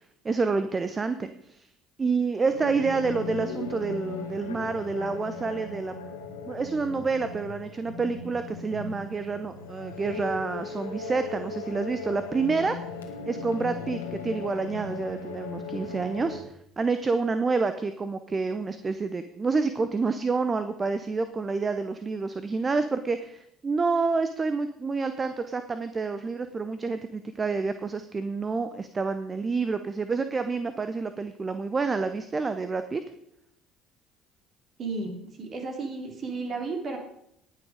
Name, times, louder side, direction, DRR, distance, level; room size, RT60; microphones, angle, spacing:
voice 1, 0.2-1.7 2.0-5.9 6.5-12.8 13.3-16.4 16.8-33.0, right 4 dB, 30° right, 10 dB, 0.8 m, -28 dB
sound 1, 2.5-16.4, left 4 dB, 85° left, 1.6 m, -37 dB
voice 2, 34.8-37.0, right 3 dB, 45° right, 3 dB, 3.2 m, -33 dB
19.0 x 6.3 x 5.0 m, 0.75 s
figure-of-eight pair, 55°, 0 cm